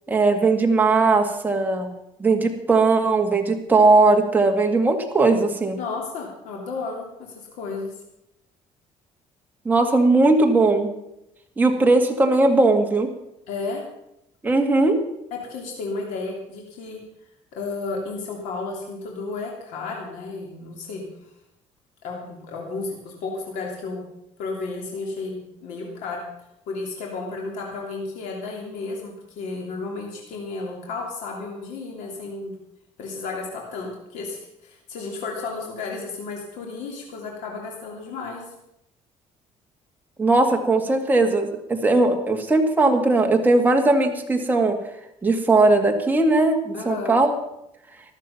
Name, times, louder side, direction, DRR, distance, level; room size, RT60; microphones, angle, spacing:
voice 1, 0.1-1.9 2.2-5.8 9.7-10.9 11.6-13.1 14.4-15.0 40.2-44.8 45.2-47.3, right 3 dB, 15° right, 3 dB, 2.0 m, -19 dB
voice 2, 5.8-7.9 13.5-13.8 15.3-17.0 17.5-21.0 22.0-24.0 24.4-26.2 26.7-32.5 33.0-38.5 46.7-47.1, left 3 dB, 85° left, 0 dB, 3.0 m, -33 dB
14.0 x 12.5 x 5.9 m, 0.83 s
cardioid pair, 130°, 12 cm